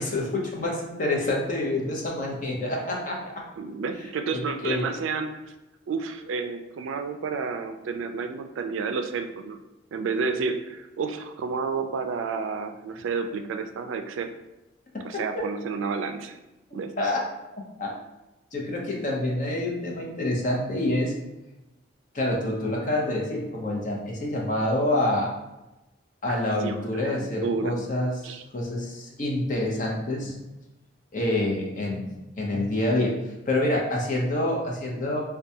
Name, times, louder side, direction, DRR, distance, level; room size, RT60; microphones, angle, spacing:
voice 1, 0.0-3.4 4.3-4.9 15.1-15.2 16.7-17.2 17.6-17.9 18.5-21.1 22.1-25.3 26.2-30.4 31.1-33.1 33.5-35.2, left 1 dB, 40° left, -2 dB, 0.7 m, -27 dB
voice 2, 3.6-5.4 5.9-9.6 9.9-14.3 15.0-16.4 16.7-16.9 26.3-27.8 28.2-28.4, right 5 dB, 80° right, 8 dB, 0.3 m, -30 dB
4.4 x 2.3 x 2.7 m, 0.99 s
head